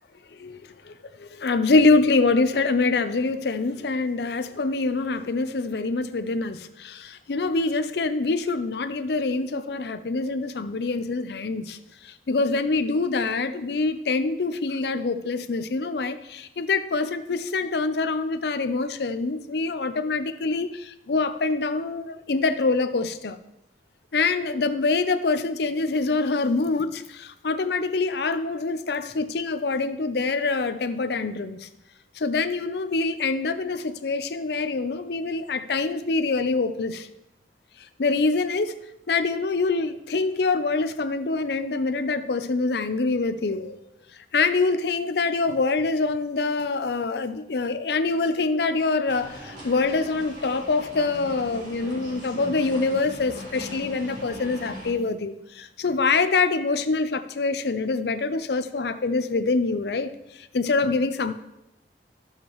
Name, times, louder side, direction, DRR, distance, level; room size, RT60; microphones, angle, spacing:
voice 1, 0.9-11.8 12.0-23.4 24.1-31.7 32.2-37.1 38.0-38.8 39.1-43.8 44.3-60.1 60.5-61.3, left 3 dB, 70° left, 0.5 m, -25 dB
sound 1, 49.1-54.9, equal, 45° right, 3.0 m, -40 dB
12.0 x 7.3 x 3.1 m
head